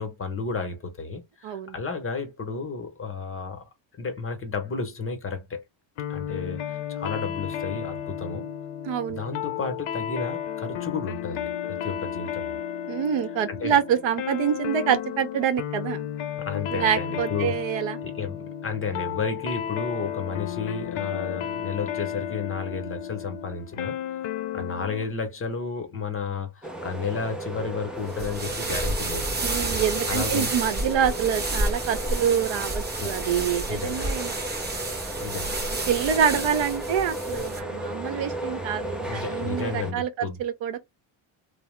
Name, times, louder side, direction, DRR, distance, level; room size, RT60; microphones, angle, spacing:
voice 1, 0.0-3.6 4.0-5.6 6.1-8.5 9.1-12.6 13.5-13.8 16.4-17.6 18.0-24.0 24.5-29.3 30.1-30.5 33.0-33.3 33.7-34.2 35.1-35.9 36.3-36.4 39.1-40.4, left 5 dB, 25° left, 0.8 m, -32 dB
voice 2, 1.4-1.7 8.8-9.2 12.9-16.1 16.7-18.0 29.4-34.4 35.9-40.8, right 8 dB, 65° right, 0.7 m, -26 dB
sound 1, 6.0-25.1, left 10 dB, 70° left, 0.6 m, -33 dB
sound 2, 26.6-39.9, right 1 dB, ahead, 0.3 m, -34 dB
sound 3, 28.1-37.6, right 2 dB, 20° right, 0.7 m, -30 dB
2.7 x 2.0 x 3.1 m
cardioid pair, 110°, 49 cm